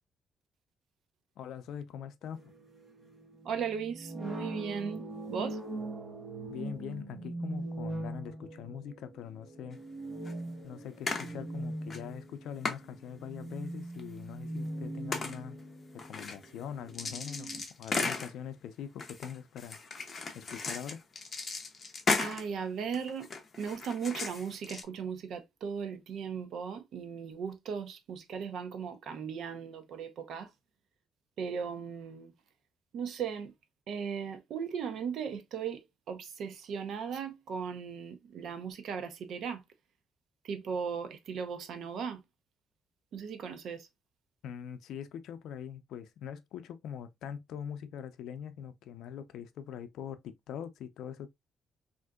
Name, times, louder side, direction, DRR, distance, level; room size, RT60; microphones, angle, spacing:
voice 1, 1.4-2.5 6.5-9.8 10.6-15.6 16.0-19.8 20.3-21.0 44.4-51.3, left 8 dB, 85° left, 0.4 m, -43 dB
sound 1, 2.3-17.6, right 1 dB, 25° right, 1.0 m, -42 dB
voice 2, 3.4-5.6 22.2-23.3 23.6-30.5 31.4-32.3 32.9-33.5 33.9-39.6 40.4-42.2 43.1-43.9, right 6 dB, 65° right, 0.6 m, -37 dB
sound 2, 9.7-9.8 10.3-10.4 11.1-11.3 11.9-12.0 12.7-12.8 14.0-14.1 15.1-15.4 16.0-16.6 16.9-18.3 19.0-22.5 22.9-24.8, left 4 dB, 30° left, 0.7 m, -35 dB
3.6 x 2.6 x 2.2 m
cardioid pair, 155°, 0 cm